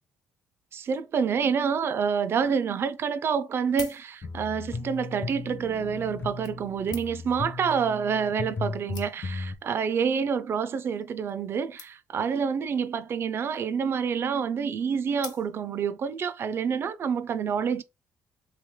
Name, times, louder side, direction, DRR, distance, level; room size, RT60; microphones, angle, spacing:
voice 1, 0.7-17.8, right 6 dB, 40° right, 0.4 m, -28 dB
sound 1, 3.6-4.6 5.5-5.6 6.4-7.4 8.2-8.3 8.6-8.7 8.9-9.5 10.2-10.4 10.7-10.8 11.0-11.1 11.3-11.4 11.8-12.3 13.3-13.7 15.2-15.9 16.4-16.5, left 8 dB, 85° left, 0.9 m, -45 dB
sound 2, 4.2-9.5, left 3 dB, 35° left, 0.5 m, -36 dB
3.3 x 3.2 x 3.5 m
cardioid pair, 150°, 6 cm